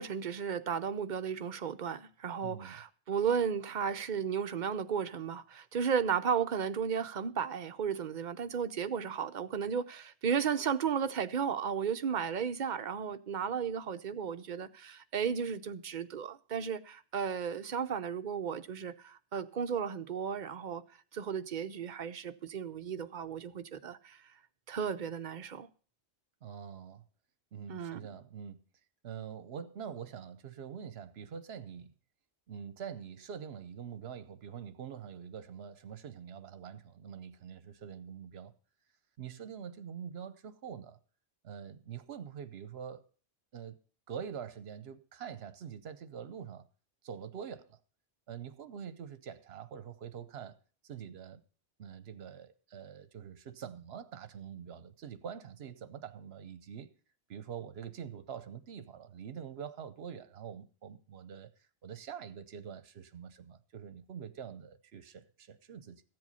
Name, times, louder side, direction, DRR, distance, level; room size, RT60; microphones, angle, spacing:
voice 1, 0.0-20.8 21.1-24.2 24.7-25.7 27.7-28.0, right 7 dB, 50° right, 0.8 m, -34 dB
voice 2, 2.4-2.8 26.4-27.0 27.5-28.6 29.0-31.9 32.5-38.5 39.2-41.0 41.4-43.0 43.5-43.8 44.1-46.7 47.0-47.8 48.3-50.6 50.8-51.4 51.8-56.9 57.3-66.0, right 7 dB, 65° right, 1.1 m, -45 dB
14.0 x 7.9 x 5.5 m
omnidirectional pair, 1.1 m